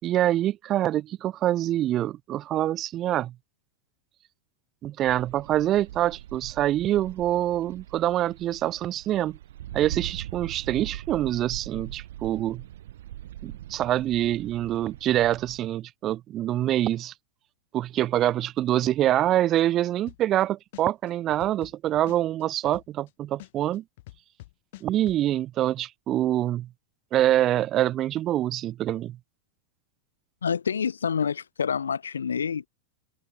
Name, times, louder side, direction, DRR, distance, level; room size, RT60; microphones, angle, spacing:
voice 1, 0.0-3.3 4.8-9.4 9.7-12.6 13.4-17.1 17.7-23.8 24.8-26.7 27.1-29.2, right 13 dB, 30° right, 2.9 m, -25 dB
sound 1, 5.1-15.6, right 13 dB, 60° right, 4.1 m, -41 dB
sound 2, 20.1-20.4 20.7-23.1 23.4-25.2, left 18 dB, 55° left, 6.8 m, -45 dB
voice 2, 30.4-32.7, left 7 dB, 70° left, 5.0 m, -27 dB
open air
figure-of-eight pair, 90°, 0 cm